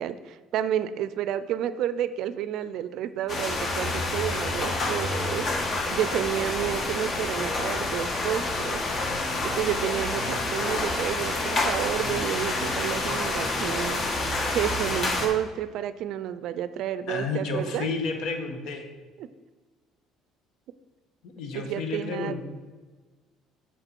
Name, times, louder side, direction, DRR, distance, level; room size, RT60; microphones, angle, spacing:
voice 1, 0.0-5.5 5.9-8.8 9.4-14.0 14.5-17.9 19.2-19.3 21.5-22.4, right 10 dB, 65° right, 14 dB, 0.4 m, -30 dB
sound 1, 3.3-15.3, left 2 dB, 40° left, 1.5 m, -28 dB
voice 2, 17.1-18.9 21.2-22.4, left 4 dB, 70° left, 5 dB, 1.2 m, -31 dB
6.7 x 6.3 x 4.5 m, 1.3 s
cardioid pair, 110°, 0 cm